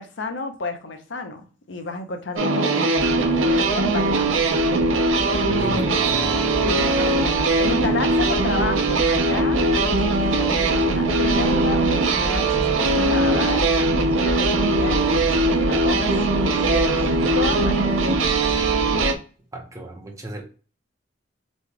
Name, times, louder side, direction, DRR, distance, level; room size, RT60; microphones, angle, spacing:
voice 1, 0.0-4.4 5.5-5.6 5.9-6.0 6.6-10.0 10.3-13.6 14.2-16.2 16.7-18.0, left 3 dB, 65° left, 0.7 m, -31 dB
sound 1, 2.4-19.1, right 2 dB, 85° right, 0.7 m, -21 dB
sound 2, 2.9-19.2, left 1 dB, 10° left, 1.0 m, -31 dB
voice 2, 5.5-6.5 19.5-20.4, right 1 dB, 15° right, 0.7 m, -34 dB
4.1 x 2.3 x 3.2 m
head